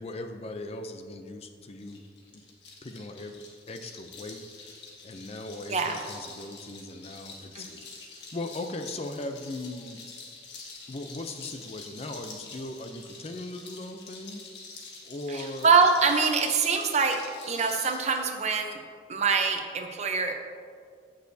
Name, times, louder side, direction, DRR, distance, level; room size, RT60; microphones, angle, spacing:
voice 1, 0.0-2.0 2.3-2.4 2.8-3.3 3.7-4.7 5.0-7.9 8.3-10.0 10.9-14.5 15.0-15.7, left 2 dB, 35° left, 6 dB, 0.5 m, -39 dB
sound 1, 1.8-18.2, left 4 dB, 75° left, 1.5 m, -46 dB
voice 2, 5.7-6.0 7.5-7.7 15.3-17.2 17.5-18.8 19.1-20.3, right 5 dB, 40° right, 4 dB, 0.7 m, -24 dB
15.0 x 6.4 x 2.7 m, 2.1 s
head